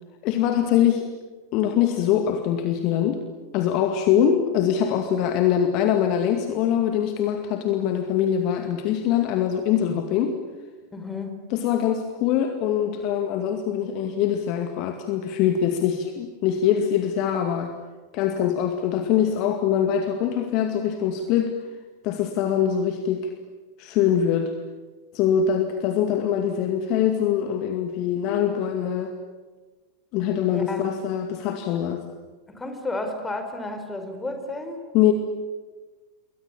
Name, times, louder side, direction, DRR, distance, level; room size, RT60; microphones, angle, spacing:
voice 1, 0.2-1.1 1.5-3.2 3.5-10.4 11.5-17.7 18.1-21.5 22.0-23.3 23.8-24.5 25.1-29.1 30.1-32.0 34.9-35.1, left 9 dB, 40° left, 6 dB, 2.2 m, -23 dB
voice 2, 10.9-11.4 30.5-30.9 32.5-34.8, left 2 dB, 10° left, 6 dB, 5.0 m, -32 dB
28.0 x 23.0 x 8.7 m, 1.3 s
figure-of-eight pair, 90°, 0 cm